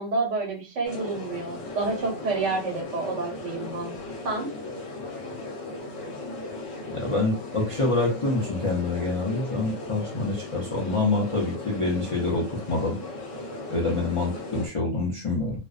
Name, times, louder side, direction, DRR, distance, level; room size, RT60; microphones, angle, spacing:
voice 1, 0.0-3.9 4.2-4.5, right 3 dB, 80° right, 1 dB, 1.1 m, -29 dB
sound 1, 0.8-14.7, left 2 dB, 75° left, 1.1 m, -37 dB
voice 2, 6.9-13.0 13.7-15.6, left 2 dB, 45° left, -4 dB, 0.4 m, -26 dB
2.5 x 2.1 x 2.3 m, 0.30 s
omnidirectional pair, 1.3 m